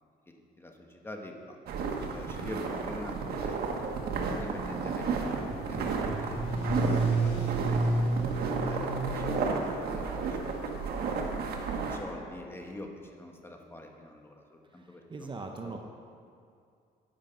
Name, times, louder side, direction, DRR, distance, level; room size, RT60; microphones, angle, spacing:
voice 1, 0.3-1.6 2.1-8.1 8.6-10.7 11.3-15.4 15.6-15.8, left 1 dB, 15° left, 2 dB, 1.3 m, -46 dB
sound 1, 1.7-12.0, right 4 dB, 65° right, 1.5 m, -32 dB
sound 2, 4.5-9.5, right 2 dB, 35° left, 3.1 m, -31 dB
voice 2, 14.7-15.8, right 3 dB, 30° right, 3 dB, 0.8 m, -41 dB
11.5 x 9.0 x 5.3 m, 2.4 s
cardioid pair, 110°, 17 cm